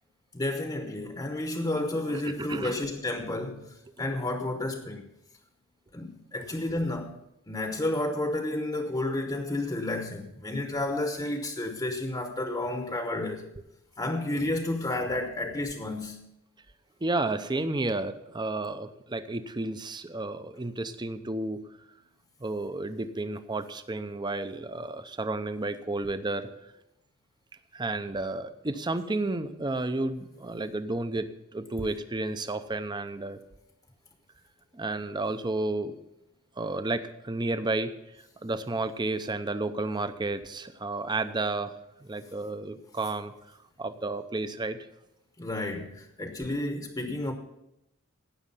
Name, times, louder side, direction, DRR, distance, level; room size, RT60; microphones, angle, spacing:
voice 1, 0.3-5.1 5.9-7.2 7.5-13.5 14.0-16.3 45.4-47.3, left 1 dB, 20° left, 0.9 m, -31 dB
voice 2, 2.1-2.8 17.0-21.6 22.4-26.5 27.7-33.4 34.7-36.0 36.6-37.9 38.4-41.7 42.0-43.3 43.8-44.8, right 2 dB, 20° right, 0.6 m, -32 dB
17.0 x 6.4 x 5.6 m
head